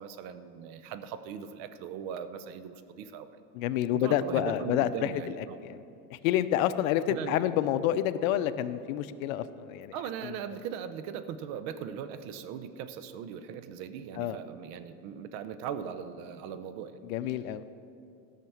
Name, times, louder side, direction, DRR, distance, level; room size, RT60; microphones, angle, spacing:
voice 1, 0.0-3.3 3.9-5.6 7.1-7.4 9.9-17.0, right 8 dB, 60° right, 12 dB, 0.8 m, -39 dB
voice 2, 3.5-5.1 5.4-5.8 6.1-9.9 10.2-10.4 14.2-14.4 17.0-17.7, left 11 dB, 85° left, 13 dB, 0.6 m, -29 dB
14.0 x 5.9 x 7.1 m, 2.6 s
supercardioid pair, 135°, 40 cm